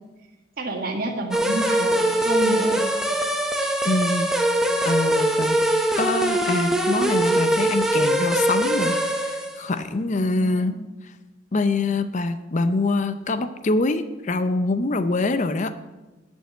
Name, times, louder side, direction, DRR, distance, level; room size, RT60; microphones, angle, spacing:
voice 1, 0.6-2.8 3.6-3.7 10.1-10.8, right 2 dB, 50° right, 0 dB, 1.6 m, -29 dB
sound 1, 1.3-9.6, right 1 dB, ahead, 0.9 m, -22 dB
voice 2, 3.8-4.3 4.8-5.6 6.0-10.8 11.5-15.7, left 2 dB, 40° left, 11 dB, 0.5 m, -24 dB
11.0 x 5.4 x 7.7 m, 1.1 s
head